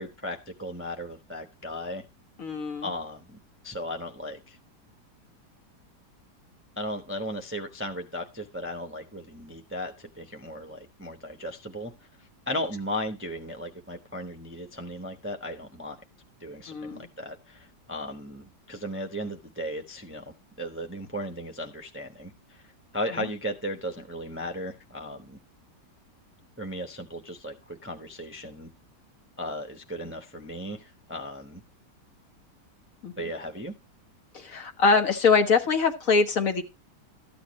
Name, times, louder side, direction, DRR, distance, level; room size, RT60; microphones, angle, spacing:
voice 1, 0.0-2.0 2.8-3.4 3.6-4.6 6.8-11.9 12.2-16.0 16.4-22.7 22.9-25.4 26.6-28.7 29.4-31.6 33.2-33.7, equal, 10° right, 4 dB, 0.8 m, -36 dB
voice 2, 2.4-2.9 16.7-17.1 23.2-23.3 33.0-33.1 34.3-36.6, left 4 dB, 55° left, 6 dB, 1.6 m, -23 dB
13.5 x 8.5 x 3.1 m, 0.27 s
omnidirectional pair, 1.8 m